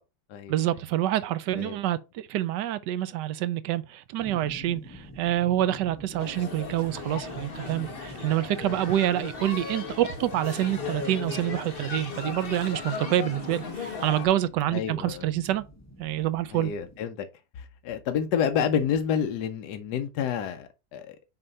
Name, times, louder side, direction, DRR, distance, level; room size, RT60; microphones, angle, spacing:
voice 1, 0.5-15.6 16.0-16.7, right 12 dB, 80° right, 1.3 m, -27 dB
sound 1, 4.2-17.0, equal, 15° left, 0.8 m, -47 dB
sound 2, 6.2-14.3, left 4 dB, 35° left, 1.2 m, -37 dB
voice 2, 14.7-15.3 16.5-17.3 17.6-21.2, left 8 dB, 75° left, 1.2 m, -29 dB
6.6 x 2.9 x 5.3 m
omnidirectional pair, 1.8 m